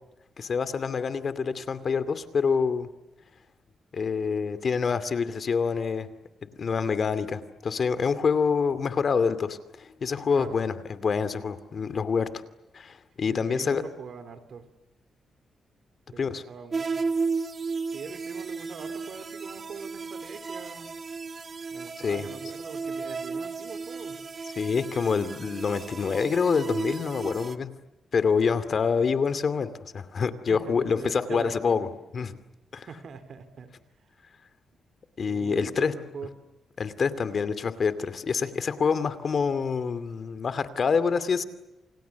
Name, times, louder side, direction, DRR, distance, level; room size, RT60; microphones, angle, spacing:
voice 1, 0.4-2.9 3.9-6.1 6.6-12.3 12.7-13.8 16.2-16.4 22.0-22.3 24.5-27.7 28.1-31.9 32.1-32.3 32.7-32.9 35.2-35.9 36.8-41.4, left 5 dB, 55° left, 12 dB, 2.5 m, -26 dB
voice 2, 13.3-14.7 16.1-17.0 17.9-20.9 21.7-24.2 30.5-31.9 32.7-33.7 35.3-36.4, right 6 dB, 65° right, 11 dB, 3.6 m, -42 dB
sound 1, 16.7-27.6, right 4 dB, 45° right, 1.4 m, -34 dB
29.0 x 28.5 x 7.1 m, 0.97 s
cardioid pair, 75°, 0 cm